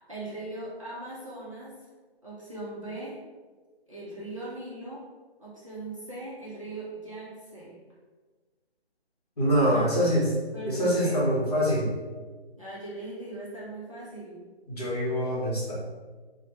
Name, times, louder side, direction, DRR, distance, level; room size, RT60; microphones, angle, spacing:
voice 1, 0.1-1.7 2.2-3.2 3.9-5.0 5.4-7.8 9.7-10.1 10.5-11.3 12.6-14.4, right 2 dB, 30° right, -9 dB, 0.5 m, -39 dB
voice 2, 9.4-10.2 10.7-11.9 14.7-15.7, equal, 35° left, -7 dB, 0.9 m, -24 dB
3.1 x 2.1 x 2.9 m, 1.4 s
figure-of-eight pair, 165°, 32 cm